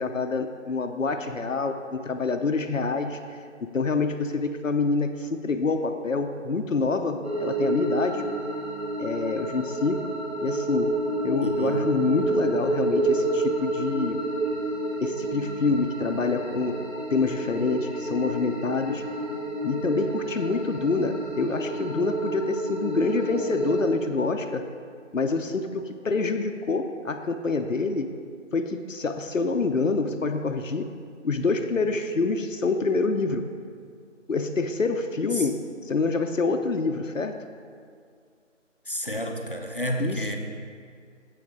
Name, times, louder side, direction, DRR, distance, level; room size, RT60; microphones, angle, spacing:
voice 1, 0.0-3.4 3.7-8.2 9.0-10.1 10.4-10.9 11.2-14.2 15.0-16.8 17.1-19.0 19.6-24.7 25.1-28.1 28.5-30.9 31.2-33.5 34.3-37.4 40.0-40.3, left 4 dB, 80° left, 6 dB, 0.7 m, -26 dB
sound 1, 7.2-23.8, right 2 dB, 55° right, 2.5 m, -29 dB
voice 2, 11.4-11.9 35.4-35.5 38.9-40.4, equal, 45° left, 2 dB, 0.7 m, -30 dB
9.8 x 7.7 x 3.7 m, 2.2 s
figure-of-eight pair, 180°, 39 cm